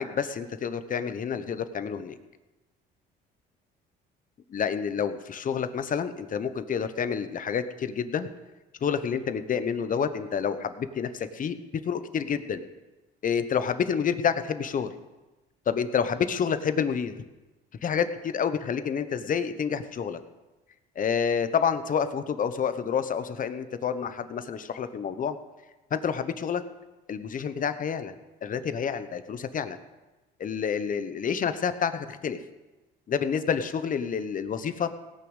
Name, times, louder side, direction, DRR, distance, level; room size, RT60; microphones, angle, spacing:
voice 1, 0.0-2.2 4.5-8.3 8.8-11.6 11.8-12.6 13.2-14.9 15.7-17.2 17.8-20.2 20.9-25.4 25.9-26.6 27.1-28.1 28.4-29.8 30.4-32.4 33.1-34.9, left 7 dB, 40° left, 11 dB, 1.0 m, -28 dB
17.5 x 6.2 x 8.2 m, 1.1 s
cardioid pair, 95°, 20 cm